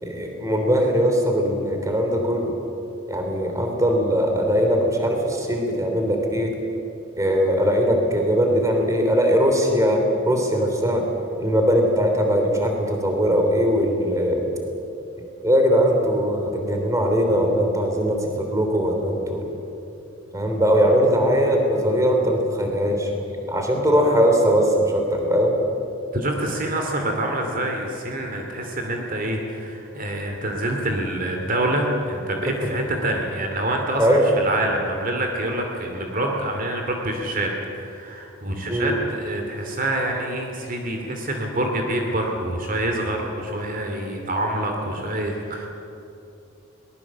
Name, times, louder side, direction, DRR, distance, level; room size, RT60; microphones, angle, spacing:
voice 1, 0.0-2.5 3.1-6.5 7.2-11.0 11.4-14.5 15.4-19.4 20.3-23.1 23.5-25.5 34.0-34.2 38.7-38.9, equal, 15° right, 2 dB, 3.1 m, -20 dB
voice 2, 26.1-45.7, right 1 dB, 45° right, 2 dB, 2.6 m, -26 dB
22.0 x 20.0 x 7.4 m, 2.8 s
head